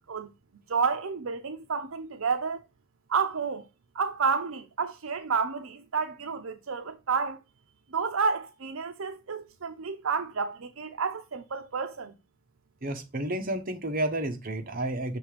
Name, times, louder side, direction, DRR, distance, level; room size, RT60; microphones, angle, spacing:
voice 1, 0.7-2.6 3.1-3.7 3.9-7.4 7.9-12.1, right 5 dB, 70° right, 0.6 m, -30 dB
voice 2, 12.8-15.2, right 1 dB, 40° right, 1.0 m, -31 dB
6.7 x 3.3 x 5.0 m
head